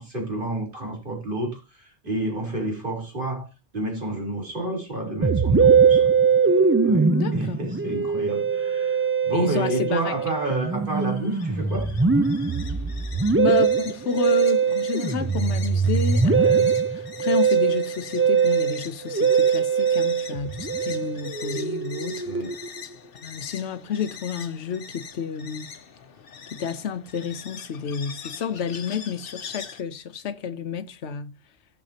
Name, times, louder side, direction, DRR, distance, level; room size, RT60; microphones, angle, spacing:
voice 1, 0.0-3.5 3.7-6.1 6.8-11.9 22.2-22.5, right 2 dB, 50° right, 4.2 m, -30 dB
Musical instrument, 5.2-22.8, right 5 dB, 20° right, 0.3 m, -22 dB
voice 2, 7.1-7.6 9.3-10.1 13.4-22.3 23.2-25.7 26.5-31.3, left 6 dB, 80° left, 1.1 m, -30 dB
sound 1, 10.2-29.8, left 6 dB, 60° left, 1.1 m, -43 dB
16.5 x 6.5 x 2.8 m
omnidirectional pair, 1.1 m